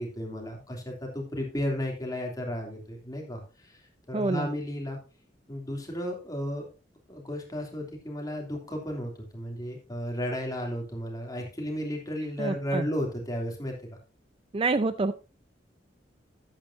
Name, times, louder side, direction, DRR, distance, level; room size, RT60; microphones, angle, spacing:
voice 1, 0.0-5.0 5.5-6.7 7.1-13.8, equal, 20° left, 1 dB, 2.9 m, -34 dB
voice 2, 4.1-4.5 12.4-12.9 14.5-15.1, right 3 dB, 30° right, 12 dB, 0.4 m, -27 dB
12.5 x 9.0 x 2.7 m, 0.31 s
head